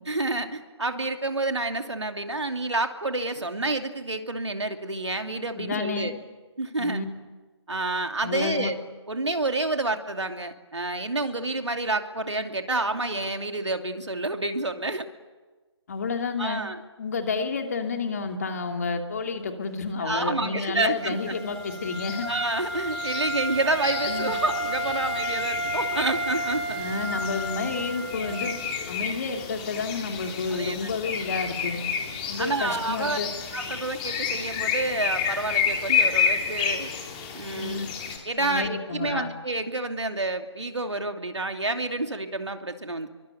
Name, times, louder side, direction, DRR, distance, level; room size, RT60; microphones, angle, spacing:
voice 1, 0.1-6.1 6.6-7.0 7.7-8.8 9.1-15.1 16.4-16.8 20.0-21.4 22.2-26.9 30.5-31.1 32.4-33.2 33.5-36.9 37.3-37.9 38.3-43.1, right 2 dB, 70° right, 6 dB, 2.7 m, -29 dB
voice 2, 5.6-6.1 6.8-7.0 8.2-8.7 15.9-16.6 17.0-22.3 24.1-24.3 26.8-28.5 28.9-31.8 32.3-33.3 37.5-37.9 38.4-39.3, left 4 dB, 35° left, 4 dB, 2.8 m, -30 dB
Wind instrument woodwind instrument, 20.9-28.8, right 1 dB, ahead, 3.2 m, -32 dB
sound 1, 21.3-38.2, left 6 dB, 15° left, 3.3 m, -31 dB
26.5 x 24.0 x 9.3 m, 1.3 s
figure-of-eight pair, 155°, 15 cm